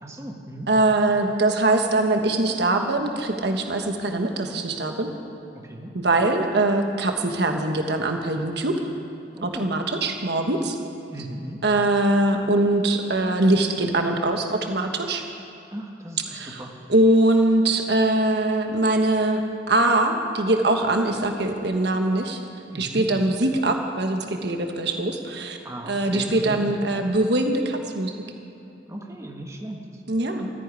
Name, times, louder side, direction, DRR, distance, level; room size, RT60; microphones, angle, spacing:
voice 1, 0.0-0.7 5.6-5.9 9.3-9.7 11.1-11.6 15.7-16.7 22.7-23.1 25.6-26.7 28.9-30.0, right 1 dB, 15° right, 1 dB, 1.5 m, -36 dB
voice 2, 0.7-5.1 5.9-8.8 9.4-10.8 11.6-15.2 16.3-16.6 16.9-19.4 19.7-22.4 22.7-25.6 25.9-28.1 30.1-30.5, right 2 dB, 65° right, 4 dB, 1.3 m, -22 dB
14.0 x 10.0 x 9.8 m, 2.8 s
head